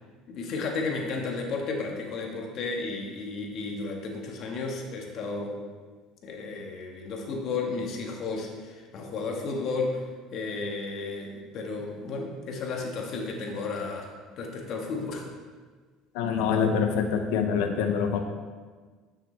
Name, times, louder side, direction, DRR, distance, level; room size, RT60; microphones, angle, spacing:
voice 1, 0.3-5.6 6.2-10.0 10.3-14.1 14.4-15.3, left 3 dB, 55° left, 1 dB, 1.6 m, -33 dB
voice 2, 16.1-18.2, left 6 dB, 80° left, 4 dB, 0.6 m, -25 dB
9.5 x 6.6 x 3.4 m, 1.4 s
supercardioid pair, 110°, 0 cm